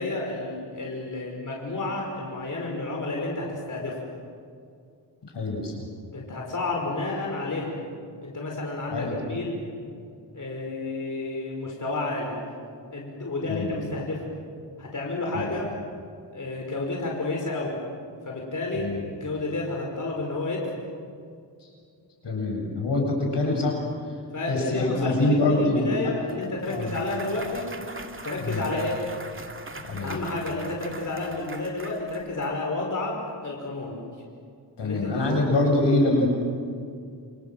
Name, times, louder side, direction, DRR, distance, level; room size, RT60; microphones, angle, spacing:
voice 1, 0.0-4.0 6.1-7.8 8.2-9.6 10.3-12.4 12.9-14.3 14.8-15.7 16.3-17.8 18.2-20.8 24.3-27.8 28.2-29.0 30.0-34.0 34.8-35.3, left 2 dB, 45° left, -1 dB, 5.5 m, -31 dB
voice 2, 5.3-5.9 8.9-9.4 13.5-13.7 15.3-15.5 18.8-19.0 21.6-21.7 22.2-23.8 24.1-24.2 24.5-26.1 26.7-27.0 28.4-28.6 29.8-30.2 34.8-36.3, left 2 dB, 75° left, 0 dB, 7.5 m, -25 dB
Clapping / Cheering / Applause, 26.3-32.5, right 3 dB, 30° right, 2.3 m, -41 dB
28.5 x 27.0 x 7.7 m, 2.3 s
wide cardioid pair, 100°, 42 cm